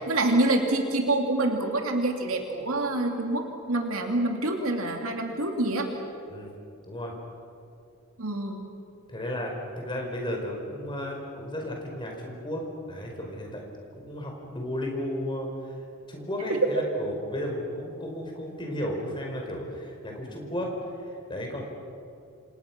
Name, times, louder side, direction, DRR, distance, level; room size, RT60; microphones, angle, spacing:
voice 1, 0.1-5.9 8.2-8.6 16.5-16.6, right 2 dB, 65° right, 3 dB, 2.7 m, -26 dB
voice 2, 9.1-13.6 14.0-15.7 16.1-20.7 21.0-21.6, left 1 dB, 20° left, 1 dB, 4.8 m, -34 dB
28.5 x 26.5 x 6.1 m, 2.6 s
head